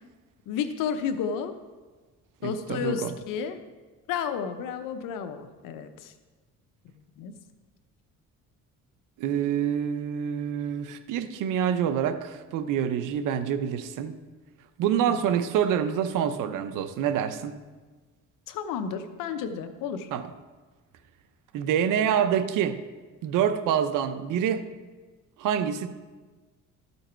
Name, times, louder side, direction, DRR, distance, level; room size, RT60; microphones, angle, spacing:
voice 1, 0.5-1.5 2.4-3.6 4.1-6.1 7.2-7.3 15.0-15.2 18.5-20.1, left 7 dB, 80° left, 9 dB, 0.9 m, -32 dB
voice 2, 2.4-3.1 9.2-14.2 14.8-17.6 20.1-20.3 21.5-22.8 23.2-24.7 25.4-25.9, right 9 dB, 75° right, 11 dB, 0.8 m, -26 dB
13.0 x 5.6 x 4.4 m, 1.3 s
cardioid pair, 105°, 32 cm